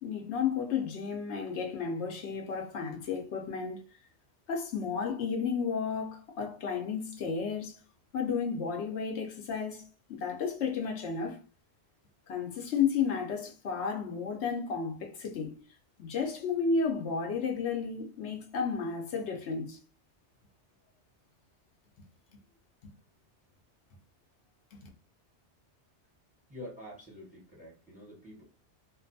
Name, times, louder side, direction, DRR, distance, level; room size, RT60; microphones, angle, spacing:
voice 1, 0.0-3.8 4.5-7.8 8.1-9.8 10.1-11.4 12.3-15.6 16.0-19.8 22.8-22.9, left 5 dB, 75° left, 0.9 m, -32 dB
voice 2, 26.5-28.4, left 1 dB, 10° right, 0.9 m, -47 dB
2.5 x 2.3 x 2.6 m
omnidirectional pair, 1.2 m